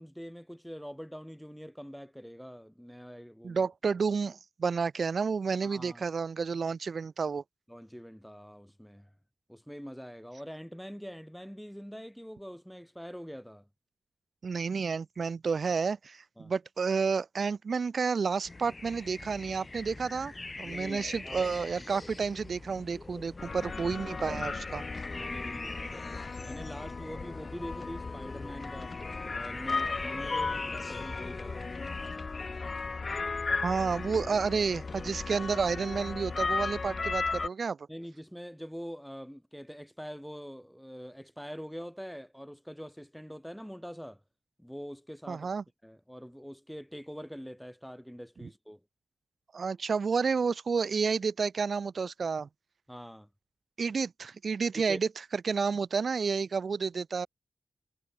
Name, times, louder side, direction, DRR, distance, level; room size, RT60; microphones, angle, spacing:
voice 1, 0.0-3.6 5.6-6.1 7.7-9.1 9.5-13.7 16.4-16.5 20.6-21.4 21.8-22.0 25.1-28.9 29.3-31.7 37.9-44.2 44.6-45.5 45.8-48.8 52.9-53.3 54.9-55.0, equal, ahead, 2.4 m, -44 dB
voice 2, 3.4-7.4 14.4-24.8 33.6-37.8 45.3-45.6 49.5-52.5 53.8-55.1 55.4-57.3, right 5 dB, 55° right, 2.3 m, -30 dB
sound 1, 18.4-32.2, left 2 dB, 25° left, 3.9 m, -43 dB
sound 2, 23.4-37.5, left 4 dB, 40° left, 2.1 m, -35 dB
wide cardioid pair, 90°, 0 cm